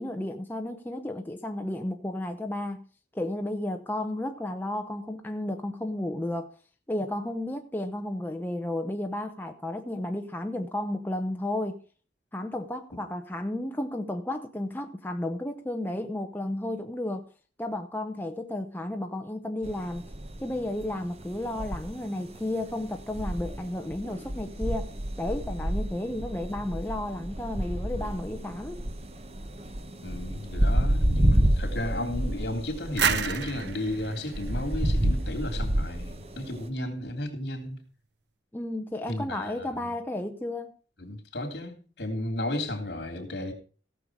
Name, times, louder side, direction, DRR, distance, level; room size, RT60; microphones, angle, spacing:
voice 1, 0.0-2.8 3.1-6.5 6.9-11.8 12.3-17.3 17.6-20.0 20.4-28.8 38.5-40.7, left 1 dB, 10° left, 0.7 m, -33 dB
sound 1, 19.6-36.7, right 1 dB, 35° right, 1.0 m, -30 dB
voice 2, 30.0-37.8 39.1-39.9 41.0-43.5, left 1 dB, 65° left, 3.2 m, -34 dB
sound 2, 33.0-35.7, right 6 dB, 70° right, 0.9 m, -31 dB
16.5 x 6.9 x 4.8 m
head